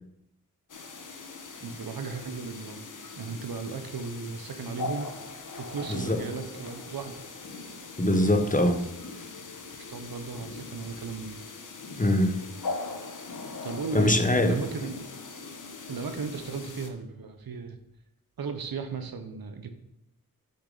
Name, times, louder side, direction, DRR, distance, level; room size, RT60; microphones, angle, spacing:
sound 1, 0.7-16.9, left 3 dB, 60° left, 1.0 m, -41 dB
voice 1, 1.6-2.8 3.2-5.1 5.6-7.2 9.8-11.4 13.6-15.0 15.9-17.8 18.4-19.7, right 5 dB, 80° right, 8 dB, 0.9 m, -36 dB
voice 2, 5.9-6.2 8.0-8.8 12.0-12.4 13.9-14.6, left 1 dB, 20° left, 6 dB, 0.9 m, -23 dB
6.7 x 6.6 x 4.0 m, 0.82 s
cardioid pair, 60°, 35 cm